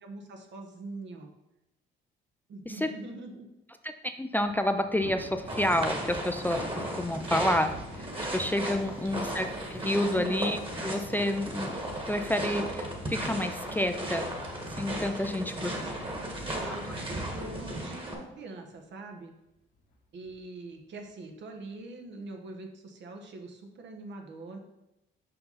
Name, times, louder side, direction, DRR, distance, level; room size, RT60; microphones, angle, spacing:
voice 1, 0.0-1.3 2.5-3.5 9.0-9.4 10.1-10.3 15.6-16.2 16.5-19.3 20.1-24.6, right 2 dB, 65° right, 3 dB, 1.2 m, -43 dB
voice 2, 4.0-8.1 8.3-11.8 12.1-14.3 14.8-15.7, left 1 dB, 10° left, 7 dB, 0.4 m, -29 dB
Thunder, 4.4-17.7 18.1-18.4 18.8-18.9 19.7-20.3, left 2 dB, 75° left, 1.4 m, -48 dB
sound 1, 5.5-18.1, right 1 dB, 25° right, 1.6 m, -36 dB
sound 2, 7.6-17.7, left 2 dB, 90° left, 0.7 m, -48 dB
5.7 x 5.4 x 4.0 m, 0.91 s
cardioid pair, 90°, 20 cm